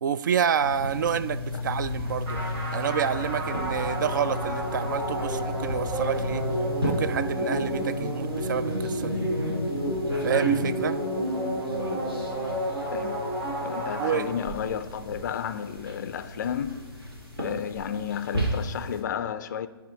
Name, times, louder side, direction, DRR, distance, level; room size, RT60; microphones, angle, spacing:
voice 1, 0.0-2.4 2.7-6.4 6.8-9.2 10.2-11.0 14.0-14.3, right 8 dB, 50° right, 0.4 m, -28 dB
sound 1, 0.6-19.0, left 1 dB, 70° right, 2.1 m, -35 dB
sound 2, 2.3-14.8, right 1 dB, 25° right, 2.2 m, -30 dB
voice 2, 12.9-13.3 13.6-16.9 17.4-19.7, left 8 dB, 45° left, 0.3 m, -32 dB
10.5 x 3.6 x 4.0 m
figure-of-eight pair, 130°, 13 cm